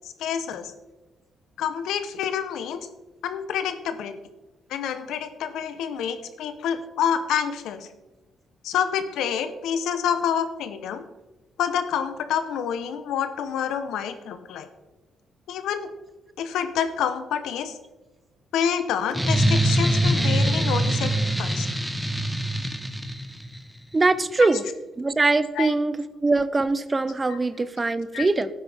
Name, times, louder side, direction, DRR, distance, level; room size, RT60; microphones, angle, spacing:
voice 1, 0.2-0.7 1.6-2.9 3.2-4.1 4.7-7.9 8.6-11.0 11.6-14.7 15.5-15.9 16.4-17.8 18.5-21.1 21.4-21.7 24.4-24.5 25.6-25.7 27.3-27.4 28.1-28.3, left 8 dB, 85° left, 9 dB, 1.0 m, -27 dB
sound 1, 19.1-23.6, right 1 dB, 5° right, 1.1 m, -23 dB
voice 2, 23.9-24.6 25.0-28.5, right 3 dB, 25° right, 15 dB, 0.6 m, -22 dB
12.5 x 9.1 x 3.6 m, 1.1 s
cardioid pair, 90°, 0 cm